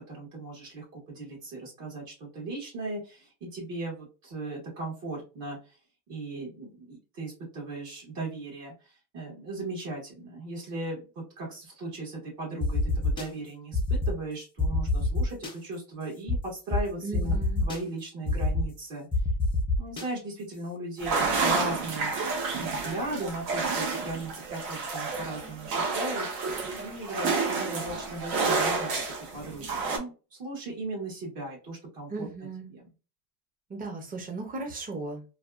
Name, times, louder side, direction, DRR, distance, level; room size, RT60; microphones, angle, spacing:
voice 1, 0.1-5.8 6.1-19.1 19.8-22.1 22.6-32.9, right 2 dB, 55° right, -2 dB, 1.6 m, -37 dB
sound 1, 12.6-13.2 13.7-14.1 14.6-15.5 16.3-16.4 16.7-16.8 17.1-17.8 18.3-18.6 19.1-20.0, left 2 dB, 10° left, 0.6 m, -26 dB
voice 2, 17.0-17.6 32.1-32.7 33.7-35.2, right 3 dB, 20° right, 3 dB, 0.7 m, -36 dB
sound 2, 21.0-30.0, right 4 dB, 70° right, 1.2 m, -30 dB
3.3 x 2.3 x 2.4 m, 0.32 s
cardioid pair, 150°, 40 cm